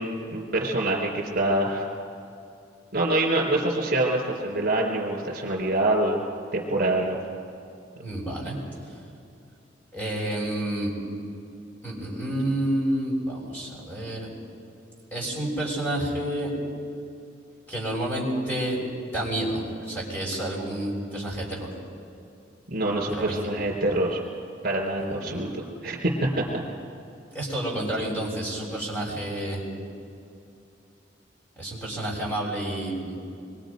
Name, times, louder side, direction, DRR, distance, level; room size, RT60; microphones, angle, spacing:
voice 1, 0.0-1.9 2.9-6.2 6.5-7.2 22.7-24.2 24.6-26.6, right 1 dB, 50° right, 0 dB, 3.5 m, -25 dB
voice 2, 8.0-8.6 9.9-10.9 11.8-14.3 15.1-16.5 17.7-21.7 23.2-23.3 25.0-25.5 27.3-29.6 31.6-33.1, right 1 dB, 10° left, -4 dB, 6.5 m, -29 dB
26.0 x 23.0 x 5.2 m, 2.5 s
head